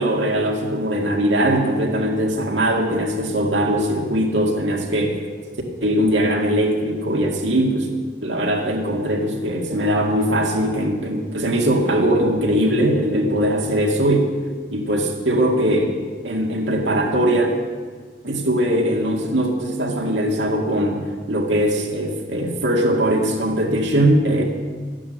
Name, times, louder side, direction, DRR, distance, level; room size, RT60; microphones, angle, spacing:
voice 1, 0.0-5.2 5.8-7.9 8.2-14.3 14.7-15.9 16.2-17.6 18.2-24.4, right 1 dB, 80° right, 1 dB, 2.3 m, -20 dB
12.0 x 10.0 x 7.7 m, 1.5 s
head